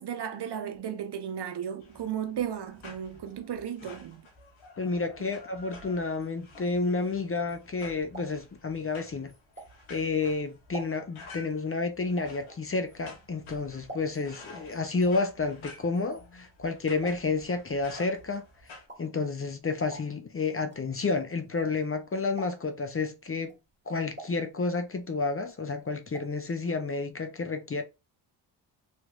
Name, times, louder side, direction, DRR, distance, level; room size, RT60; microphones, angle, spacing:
voice 1, 0.0-4.3, right 9 dB, 55° right, 0.8 m, -35 dB
sound 1, 1.8-18.9, left 3 dB, 75° left, 1.3 m, -51 dB
voice 2, 4.8-9.3 9.9-18.4 19.0-23.5 23.9-27.8, left 3 dB, 30° left, 0.6 m, -30 dB
sound 2, 8.0-10.1 10.5-14.4 14.7-22.0 22.3-22.9 23.3-25.1 25.4-26.4 26.7-26.8 27.1-27.2, right 2 dB, 20° right, 1.8 m, -48 dB
3.2 x 3.0 x 2.4 m
cardioid pair, 55°, 48 cm